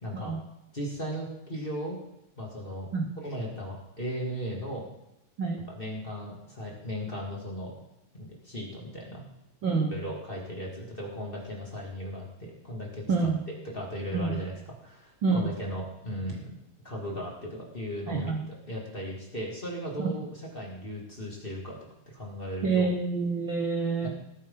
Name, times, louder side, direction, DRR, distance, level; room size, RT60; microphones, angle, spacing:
voice 1, 0.0-0.3 0.7-2.0 2.4-2.9 3.2-4.9 5.7-7.7 8.1-9.2 9.9-14.5 14.8-16.5 16.8-21.8 22.1-22.9 24.0-24.1, equal, 15° left, -2 dB, 2.5 m, -37 dB
voice 2, 9.6-9.9 13.1-13.4 14.1-14.4 15.2-15.5 18.1-18.4 20.0-20.1 22.6-24.1, right 4 dB, 60° right, 3 dB, 1.3 m, -27 dB
18.5 x 10.0 x 4.0 m, 0.86 s
omnidirectional pair, 4.0 m